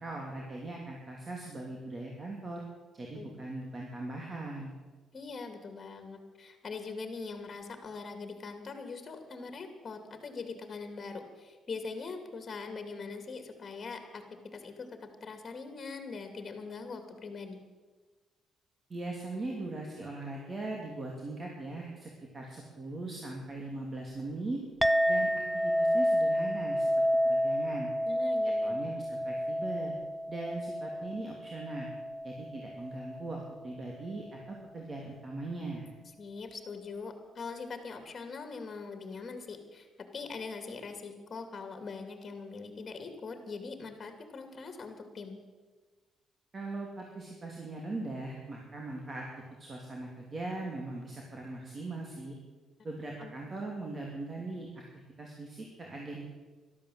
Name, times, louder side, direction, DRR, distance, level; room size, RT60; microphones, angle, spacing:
voice 1, 0.0-2.6 2.9-4.7 18.9-24.6 25.1-26.9 27.2-27.9 28.4-29.9 30.3-31.9 32.2-35.8 46.5-52.3 52.8-54.8 55.2-56.2, right 2 dB, 35° right, 0 dB, 2.8 m, -40 dB
voice 2, 5.1-17.6 28.0-28.8 36.2-39.9 40.1-45.4 53.2-53.3, left 4 dB, 40° left, 7 dB, 2.6 m, -42 dB
Chink clink, 24.8-33.5, equal, 5° right, 0.4 m, -30 dB
13.0 x 12.5 x 7.9 m, 1.3 s
cardioid pair, 90°, 0 cm